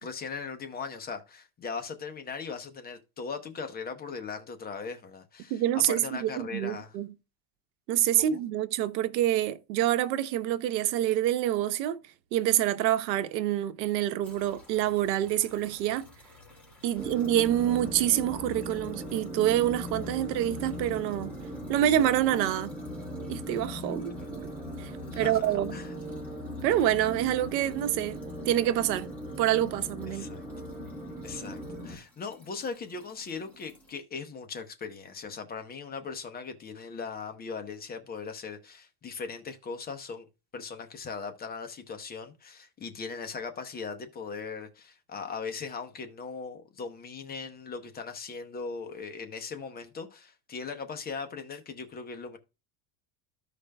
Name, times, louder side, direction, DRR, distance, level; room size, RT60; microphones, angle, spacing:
voice 1, 0.0-5.6 5.9-7.0 8.2-8.4 24.2-24.3 25.1-25.9 30.1-30.5 31.2-40.3 40.5-52.4, left 5 dB, 20° left, 0.7 m, -39 dB
voice 2, 5.5-7.1 7.9-12.0 12.3-16.1 16.8-21.4 21.7-22.8 23.3-24.5 24.8-24.9 25.2-25.7 26.6-28.2 28.4-29.1 29.4-30.3, right 12 dB, 90° right, 0.9 m, -27 dB
sound 1, 14.2-34.0, left 1 dB, 5° left, 2.2 m, -55 dB
sound 2, 16.9-32.0, equal, 15° right, 2.2 m, -39 dB
14.0 x 5.0 x 2.2 m
supercardioid pair, 150°, 49 cm